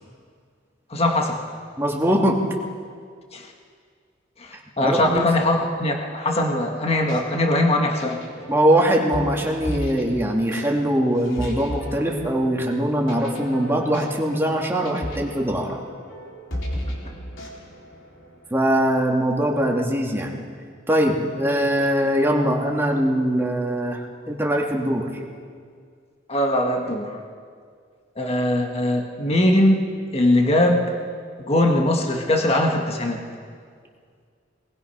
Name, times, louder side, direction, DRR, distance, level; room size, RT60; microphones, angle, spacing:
voice 1, 0.9-1.4 3.3-3.5 4.4-8.2 26.3-27.1 28.2-29.9 30.1-30.9 31.4-33.2, left 1 dB, 30° left, 2 dB, 1.7 m, -21 dB
voice 2, 1.8-2.4 4.8-5.3 8.5-15.8 18.5-20.3 20.9-24.0 24.3-25.1, right 1 dB, 10° right, -1 dB, 2.3 m, -22 dB
sound 1, 6.9-18.5, equal, 80° left, 3.6 m, -35 dB
24.5 x 20.0 x 5.7 m, 2.1 s
head